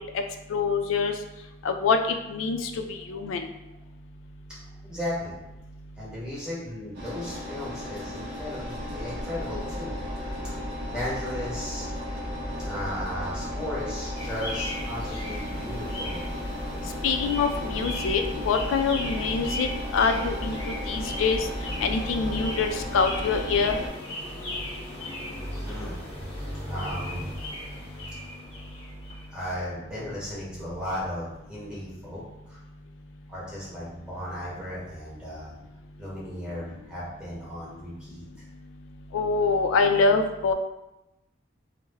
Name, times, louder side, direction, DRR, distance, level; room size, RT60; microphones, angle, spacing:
voice 1, 0.5-1.1 1.6-3.5 17.0-21.5 21.8-23.8 39.1-40.5, left 4 dB, 80° left, 6 dB, 0.3 m, -25 dB
voice 2, 4.8-5.4 6.0-9.9 10.4-10.5 10.9-11.9 12.6-16.2 25.6-26.0 26.7-27.3 29.3-32.6 33.3-35.5 36.0-38.4, left 1 dB, 5° right, -8 dB, 0.7 m, -36 dB
Engine, 6.9-23.9, left 1 dB, 55° right, 0.6 m, -34 dB
sound 1, 14.2-29.4, left 1 dB, 30° left, 0.8 m, -37 dB
2.2 x 2.0 x 3.3 m, 0.93 s
head